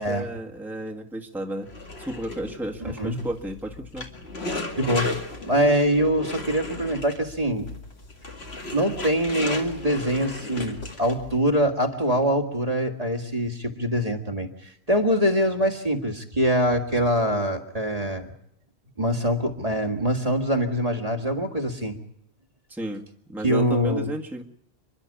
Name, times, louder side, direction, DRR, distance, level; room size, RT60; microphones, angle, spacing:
voice 1, 0.0-4.1 22.7-24.4, right 1 dB, ahead, 0 dB, 1.6 m, -33 dB
sound 1, 1.7-11.4, left 2 dB, 75° left, 2.5 m, -35 dB
voice 2, 2.8-3.2 4.8-5.1 5.4-7.7 8.7-18.3 19.0-22.0 23.4-24.1, equal, 35° right, 4 dB, 1.9 m, -24 dB
29.5 x 11.5 x 8.5 m, 0.77 s
omnidirectional pair, 1.1 m